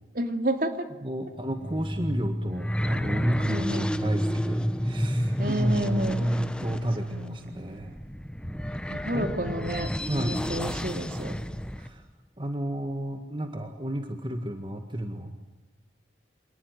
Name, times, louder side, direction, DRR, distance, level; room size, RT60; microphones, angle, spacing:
voice 1, 0.1-0.9 3.5-3.9 5.4-6.2 7.1-7.4 8.9-9.9 10.2-11.3, right 1 dB, 50° right, 7 dB, 2.6 m, -30 dB
voice 2, 1.0-3.7 4.0-8.0 9.1-9.5 10.1-10.4 11.8-12.0 12.4-15.3, right 1 dB, 25° right, 6 dB, 1.8 m, -31 dB
sound 1, 1.4-11.9, equal, 5° left, 1.0 m, -31 dB
27.0 x 19.0 x 9.3 m, 1.1 s
head